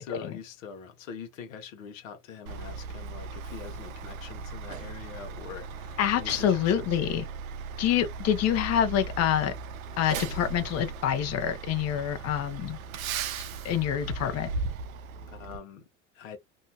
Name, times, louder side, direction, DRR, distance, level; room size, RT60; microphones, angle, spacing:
voice 1, 0.0-6.9 15.3-15.8 16.1-16.4, left 7 dB, 75° left, 0.9 m, -43 dB
Truck, 2.5-15.6, right 4 dB, 90° right, 0.6 m, -38 dB
voice 2, 6.0-7.3 7.8-9.5 10.0-12.8 13.6-14.5, left 10 dB, 40° left, 0.7 m, -26 dB
2.7 x 2.2 x 2.8 m
hypercardioid pair, 85°, 40 cm